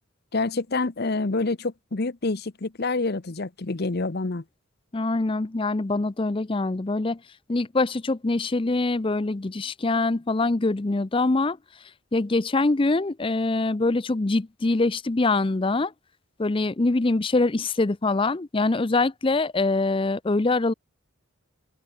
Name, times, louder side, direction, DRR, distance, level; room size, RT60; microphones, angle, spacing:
voice 1, 0.3-4.4, left 3 dB, 50° left, 0.9 m, -27 dB
voice 2, 4.9-7.2 7.5-11.6 12.1-15.9 16.4-20.7, left 2 dB, 25° left, 0.5 m, -24 dB
open air
head